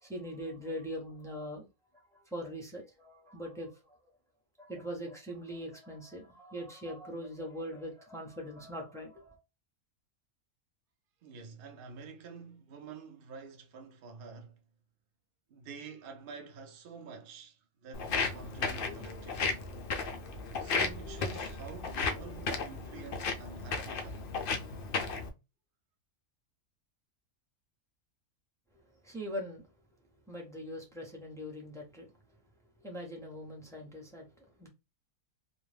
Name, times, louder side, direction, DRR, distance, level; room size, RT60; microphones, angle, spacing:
voice 1, 0.0-1.6 1.9-4.0 4.6-9.4 29.0-29.7 30.3-32.1 32.8-34.2 34.6-34.7, equal, 5° left, 0.4 m, -41 dB
voice 2, 11.2-14.6 15.5-19.7 20.6-24.3, right 5 dB, 65° right, 0.5 m, -48 dB
Walk footsteps, 17.9-25.3, left 4 dB, 75° left, 0.5 m, -34 dB
2.5 x 2.1 x 3.2 m
omnidirectional pair, 1.5 m